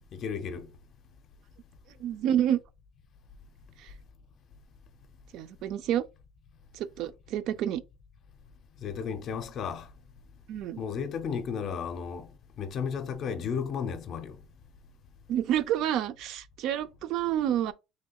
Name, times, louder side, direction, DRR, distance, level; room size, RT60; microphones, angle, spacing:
voice 1, 0.1-0.7 8.8-9.9 10.8-12.3 12.6-14.4, left 6 dB, 35° left, 0.5 m, -33 dB
voice 2, 2.0-2.6 3.8-3.9 5.3-6.0 6.7-7.8 10.5-10.8 15.3-17.7, right 11 dB, 50° right, 0.4 m, -29 dB
5.7 x 3.1 x 2.3 m
cardioid pair, 170°, 0 cm